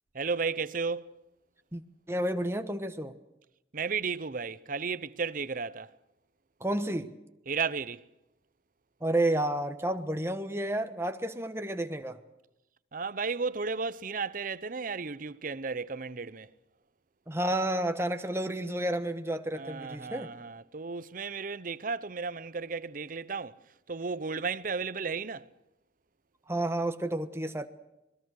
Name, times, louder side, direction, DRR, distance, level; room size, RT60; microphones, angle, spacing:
voice 1, 0.1-1.1 3.7-5.9 7.5-8.0 12.9-16.5 19.5-23.6 23.9-25.5, right 5 dB, 50° right, 0.8 m, -34 dB
voice 2, 2.1-3.2 6.6-7.1 9.0-12.2 17.3-20.3 26.5-27.7, right 1 dB, 15° right, 1.2 m, -31 dB
26.5 x 21.5 x 6.5 m
head